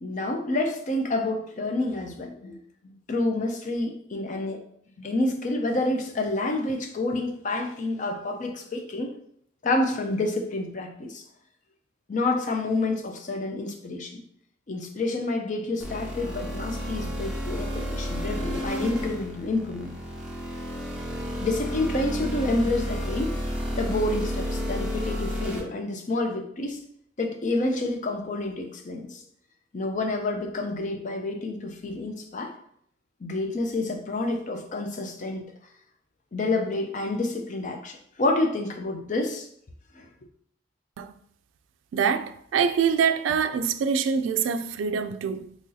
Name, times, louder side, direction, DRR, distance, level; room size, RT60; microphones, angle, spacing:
voice 1, 0.0-2.6 2.8-4.6 5.0-9.1 9.6-11.2 12.1-14.2 14.7-19.9 21.4-23.4 23.7-26.8 27.2-29.2 29.7-32.5 33.2-35.5 36.3-39.5 39.9-40.1, left 2 dB, 40° left, 0.5 m, -28 dB
sound 1, 15.8-25.6, equal, 5° right, 0.7 m, -31 dB
voice 2, 41.9-45.6, right 6 dB, 85° right, 0.3 m, -25 dB
3.0 x 2.7 x 3.9 m
head